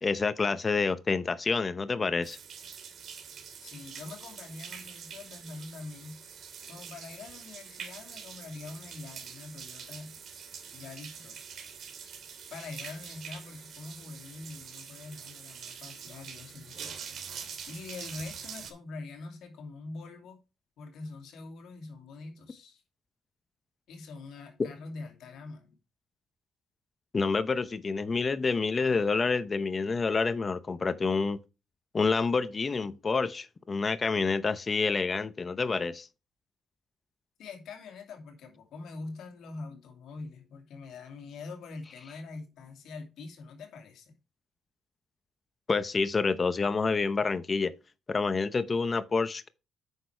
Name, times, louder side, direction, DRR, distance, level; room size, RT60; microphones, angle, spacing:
voice 1, 0.0-2.4 27.1-31.4 31.9-36.1 45.7-47.7 48.1-49.5, left 4 dB, 35° left, 0.8 m, -28 dB
sound 1, 2.2-18.7, right 7 dB, 65° right, 2.5 m, -45 dB
voice 2, 3.6-6.2 6.7-10.2 10.7-11.5 12.5-16.9 17.6-20.4 20.8-22.8 23.9-25.8 37.4-44.2, left 3 dB, 75° left, 2.6 m, -44 dB
9.1 x 6.3 x 3.3 m
cardioid pair, 90°, 0 cm